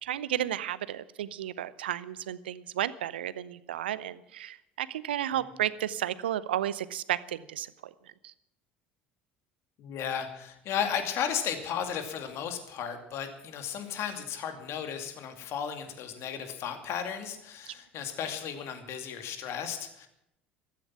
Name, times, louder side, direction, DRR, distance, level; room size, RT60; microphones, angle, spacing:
voice 1, 0.0-8.3 17.7-17.8, right 11 dB, 80° right, 17 dB, 0.7 m, -33 dB
voice 2, 9.8-20.1, left 8 dB, 55° left, 7 dB, 2.5 m, -34 dB
15.0 x 14.0 x 5.9 m, 0.79 s
figure-of-eight pair, 65°, 6 cm